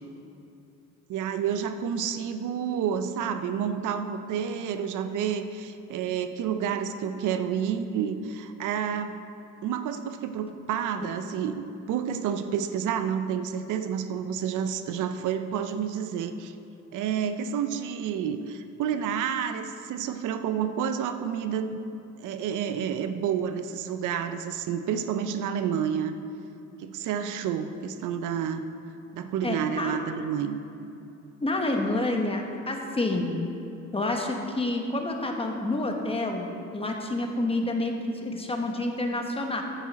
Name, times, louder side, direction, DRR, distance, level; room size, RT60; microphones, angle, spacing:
voice 1, 1.1-9.2 9.6-16.6 16.9-21.8 22.2-26.1 26.8-28.6 29.1-30.6, right 8 dB, 80° right, 9 dB, 0.6 m, -29 dB
voice 2, 29.4-30.0 31.4-33.3 33.9-39.6, left 2 dB, 20° left, 2 dB, 1.1 m, -28 dB
9.0 x 8.7 x 4.1 m, 2.7 s
cardioid pair, 90°, 30 cm